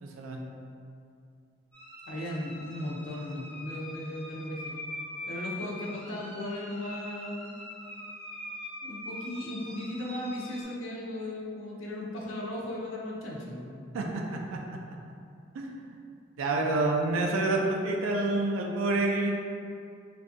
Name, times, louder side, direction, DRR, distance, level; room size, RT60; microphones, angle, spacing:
voice 1, 0.0-0.4 13.9-14.0 14.5-14.6 15.5-15.8 16.4-19.3, right 2 dB, 85° right, 1 dB, 0.3 m, -28 dB
sound 1, 1.7-10.6, left 1 dB, 5° left, 0.5 m, -43 dB
voice 2, 2.1-4.8 5.3-7.5 8.8-13.9, left 1 dB, 80° left, -3 dB, 0.5 m, -36 dB
2.5 x 2.2 x 2.5 m, 2.4 s
head